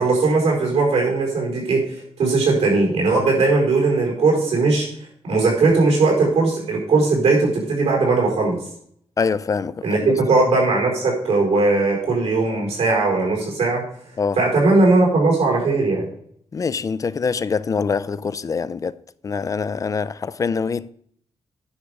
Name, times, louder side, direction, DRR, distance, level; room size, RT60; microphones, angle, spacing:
voice 1, 0.0-1.8 2.2-4.9 5.2-8.6 9.8-13.8 14.4-16.1, right 3 dB, 85° right, 4.8 m, -18 dB
voice 2, 9.2-10.2 14.2-14.4 16.5-19.0 19.2-20.9, left 5 dB, 35° left, 0.4 m, -24 dB
10.0 x 5.0 x 6.5 m
wide cardioid pair, 130°, 11 cm